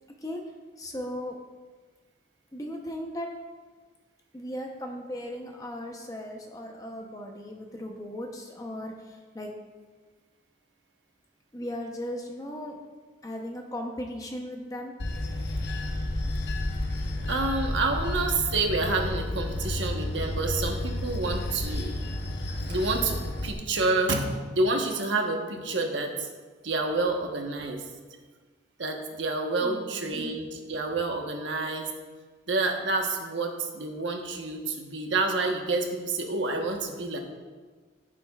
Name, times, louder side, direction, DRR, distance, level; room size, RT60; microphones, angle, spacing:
voice 1, 0.2-1.4 2.5-3.3 4.3-9.5 11.5-12.8 13.2-14.9 29.6-30.2, left 1 dB, 20° left, 2 dB, 0.7 m, -37 dB
Bell / Train, 15.0-23.5, left 1 dB, 60° left, 0.9 m, -31 dB
voice 2, 17.2-21.9 22.5-26.3 26.6-27.8 28.8-31.9 32.5-37.2, right 3 dB, 80° right, 3 dB, 1.1 m, -28 dB
13.5 x 7.5 x 2.4 m, 1.4 s
head